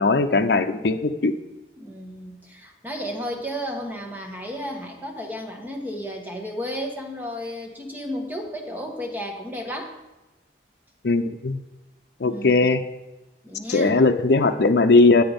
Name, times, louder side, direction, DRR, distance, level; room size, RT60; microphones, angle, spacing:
voice 1, 0.0-1.3 11.0-11.6 12.2-12.8 13.7-15.2, left 3 dB, 65° left, 6 dB, 0.6 m, -19 dB
voice 2, 1.8-9.9 12.2-12.7 13.4-14.0, equal, 10° right, 2 dB, 1.3 m, -33 dB
9.2 x 7.8 x 5.2 m, 1.0 s
head